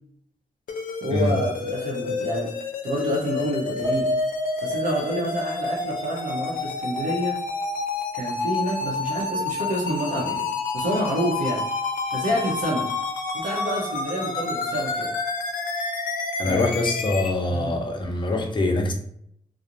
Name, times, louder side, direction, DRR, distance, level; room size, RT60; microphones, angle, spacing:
sound 1, 0.7-17.3, left 4 dB, 90° left, 0.4 m, -29 dB
voice 1, 1.0-2.5 2.8-4.1 4.6-7.4 8.1-10.5 10.7-11.6 12.1-12.8 13.3-15.1 16.4-16.7 17.5-17.8, right 1 dB, 80° right, 0.7 m, -28 dB
Piano, 3.8-8.3 8.7-8.8 9.2-9.4, right 1 dB, 15° right, 0.9 m, -32 dB
voice 2, 16.4-18.9, left 2 dB, 35° left, 0.5 m, -24 dB
2.4 x 2.0 x 2.8 m
wide cardioid pair, 110°, 14 cm